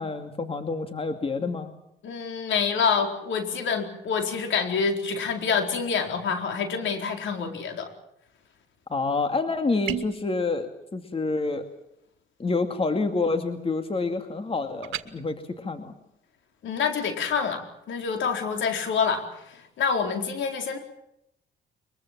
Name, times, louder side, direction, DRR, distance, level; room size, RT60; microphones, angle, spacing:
voice 1, 0.0-1.7 8.9-11.6 12.4-15.9, left 3 dB, 30° left, 7 dB, 2.4 m, -28 dB
voice 2, 2.0-7.9 16.6-20.8, left 6 dB, 70° left, 5 dB, 4.3 m, -27 dB
sound 1, 9.9-10.3 14.8-15.1, right 13 dB, 85° right, 1.5 m, -31 dB
23.0 x 23.0 x 7.5 m, 0.79 s
cardioid pair, 90°, 20 cm